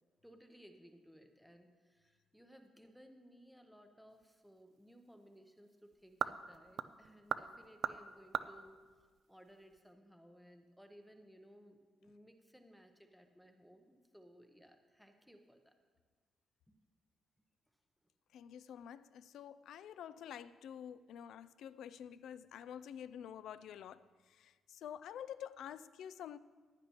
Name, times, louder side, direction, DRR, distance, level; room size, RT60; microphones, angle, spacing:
voice 1, 0.2-15.7 16.7-16.8, equal, ahead, 0.7 m, -61 dB
sound 1, 4.1-9.9, right 8 dB, 65° right, 0.3 m, -43 dB
voice 2, 18.3-26.4, left 9 dB, 85° left, 0.3 m, -49 dB
15.5 x 10.5 x 2.9 m
cardioid pair, 135°, 0 cm